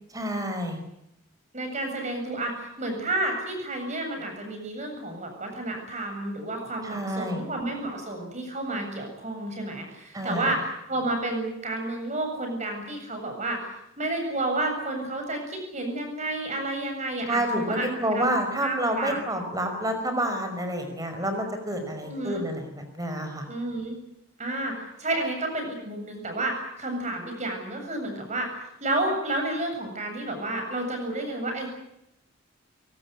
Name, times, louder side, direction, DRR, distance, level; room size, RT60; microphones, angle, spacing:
voice 1, 0.1-0.8 6.8-7.4 10.1-10.5 17.2-23.5, right 1 dB, 15° right, 6 dB, 5.4 m, -29 dB
voice 2, 1.5-17.9 18.1-18.3 18.6-19.2 22.0-22.4 23.5-24.0 24.4-31.7, right 2 dB, 35° right, 4 dB, 7.6 m, -31 dB
24.0 x 18.5 x 9.8 m, 0.81 s
head